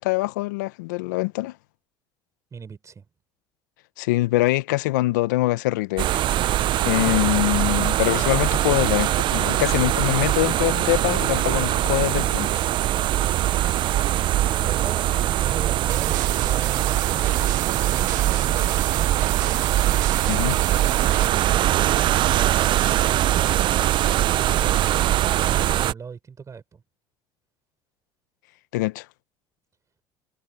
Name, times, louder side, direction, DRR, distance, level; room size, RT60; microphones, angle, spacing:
voice 1, 0.0-1.5 4.0-6.1 6.8-12.5 20.3-20.6 28.7-29.1, left 19 dB, 90° left, 0.8 m, -23 dB
voice 2, 2.5-3.0 14.5-17.6 17.9-18.1 18.4-19.5 21.0-26.8, right 6 dB, 30° right, 6.1 m, -39 dB
sound 1, 6.0-25.9, right 13 dB, 55° right, 0.6 m, -22 dB
sound 2, 15.9-21.3, right 19 dB, 90° right, 2.3 m, -34 dB
supercardioid pair, 85°, 10 cm